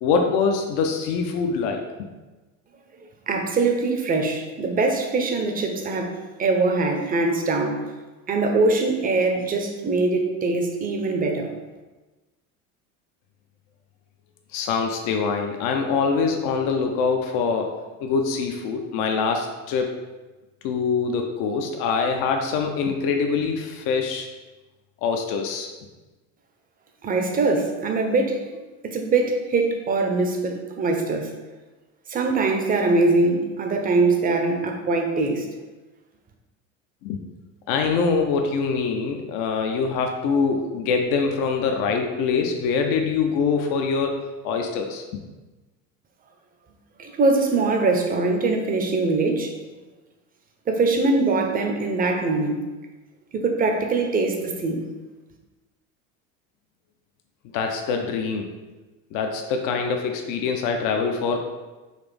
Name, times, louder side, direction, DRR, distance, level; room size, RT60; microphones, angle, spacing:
voice 1, 0.0-2.1 14.5-19.9 20.6-24.3 25.0-25.7 37.0-37.2 37.7-45.2 57.5-58.5 59.1-61.4, left 5 dB, 55° left, 4 dB, 0.5 m, -24 dB
voice 2, 3.3-6.1 6.4-7.8 8.3-11.5 27.0-28.5 28.8-31.3 32.1-35.5 47.0-49.5 50.7-52.6 53.3-54.8, right 3 dB, 20° right, 4 dB, 0.5 m, -22 dB
4.1 x 2.4 x 3.2 m, 1.2 s
hypercardioid pair, 90°, 40 cm